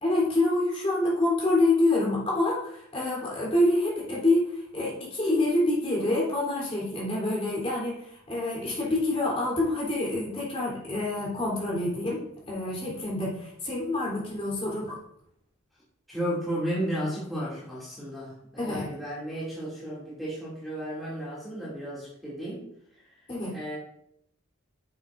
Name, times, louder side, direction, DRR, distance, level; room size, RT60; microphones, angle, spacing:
voice 1, 0.0-15.0 18.6-18.9 23.3-23.6, left 2 dB, 30° left, -4 dB, 3.4 m, -27 dB
voice 2, 16.1-22.6 23.5-23.8, equal, ahead, -9 dB, 2.5 m, -33 dB
10.5 x 7.8 x 2.6 m, 0.73 s
head